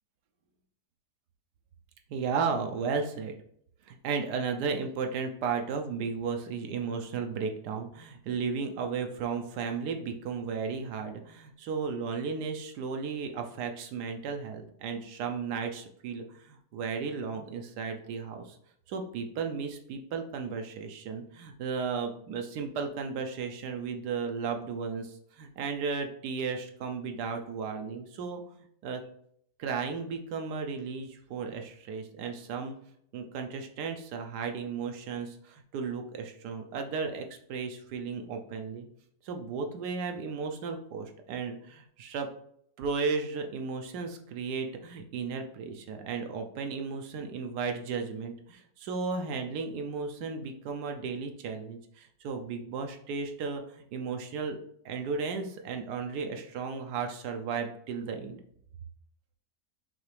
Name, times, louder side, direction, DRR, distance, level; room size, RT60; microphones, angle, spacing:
voice 1, 2.1-3.4 3.8-18.6 18.9-29.0 29.6-32.8 33.1-38.9 39.2-42.3 42.8-54.6 54.8-58.4, right 5 dB, 90° right, 4 dB, 1.3 m, -34 dB
5.7 x 2.9 x 3.2 m, 0.67 s
omnidirectional pair, 1.7 m